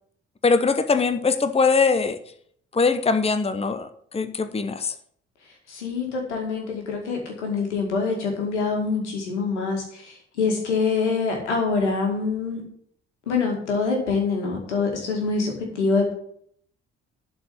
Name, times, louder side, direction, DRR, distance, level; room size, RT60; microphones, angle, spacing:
voice 1, 0.4-2.2 2.7-4.9, left 4 dB, 15° left, 10 dB, 0.9 m, -22 dB
voice 2, 5.7-12.6 13.3-16.1, left 4 dB, 80° left, 1 dB, 2.2 m, -25 dB
11.5 x 4.8 x 8.3 m, 0.64 s
figure-of-eight pair, 40°, 34 cm